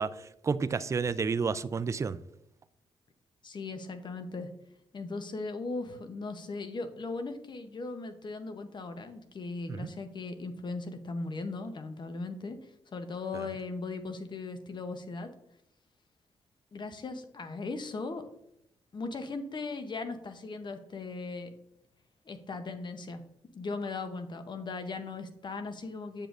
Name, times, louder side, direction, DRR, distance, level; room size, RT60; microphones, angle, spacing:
voice 1, 0.0-2.2 9.7-9.9 13.3-13.5, right 5 dB, 30° right, 14 dB, 0.3 m, -31 dB
voice 2, 3.4-4.5 4.9-15.3 16.7-18.2 18.9-21.5 22.3-23.2 23.5-26.3, left 3 dB, 45° left, 8 dB, 0.8 m, -38 dB
7.6 x 5.1 x 2.5 m, 0.79 s
cardioid pair, 65°, 11 cm